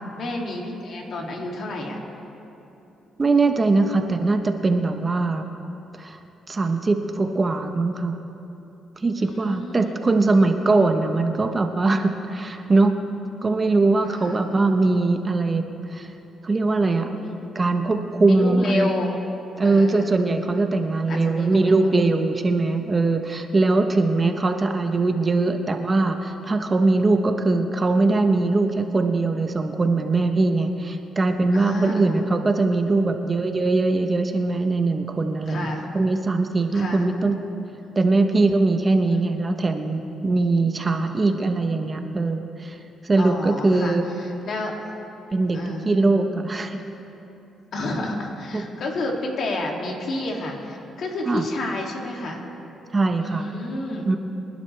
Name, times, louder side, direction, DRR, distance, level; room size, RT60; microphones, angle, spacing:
voice 1, 0.1-2.0 9.2-10.0 14.0-14.7 17.1-17.8 18.2-19.2 19.6-20.1 21.1-22.0 31.5-32.2 35.5-35.9 36.7-37.0 39.1-39.2 41.2-41.4 43.2-44.7 45.5-45.9 47.7-52.4 53.2-54.1, left 2 dB, 60° left, 0 dB, 2.5 m, -30 dB
voice 2, 3.2-5.5 6.0-6.2 6.5-8.2 9.0-13.0 13.4-15.6 15.9-16.1 16.4-17.1 17.5-18.9 19.6-37.4 38.0-42.8 43.0-44.0 45.3-46.8 48.5-48.6 51.3-51.4 52.9-53.5 54.0-54.2, right 3 dB, 30° right, 6 dB, 1.0 m, -21 dB
24.5 x 11.5 x 3.3 m, 2.9 s
cardioid pair, 90°, 0 cm